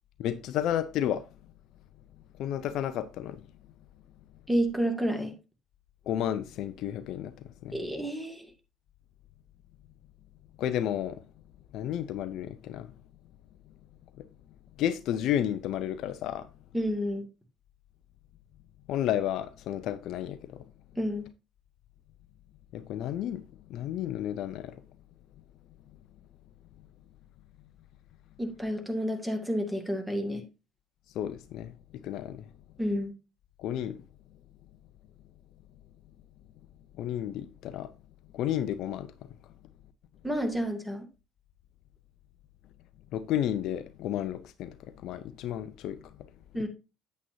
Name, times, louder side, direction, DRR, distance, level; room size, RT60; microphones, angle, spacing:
voice 1, 0.2-1.2 2.4-3.4 6.1-7.3 7.6-7.8 10.6-11.2 11.7-12.9 14.2-14.3 14.8-16.5 18.9-20.6 22.7-23.4 23.7-24.7 31.1-31.7 32.0-32.5 33.6-34.0 37.0-37.9 38.3-39.1 43.1-44.8 45.0-46.1, left 11 dB, 60° left, 0.6 m, -32 dB
voice 2, 4.5-5.3 7.7-8.5 16.7-17.2 21.0-21.3 28.4-30.4 32.8-33.1 40.2-41.1 46.5-46.7, equal, 5° right, 2.2 m, -30 dB
8.4 x 8.2 x 2.7 m
hypercardioid pair, 55°, 0 cm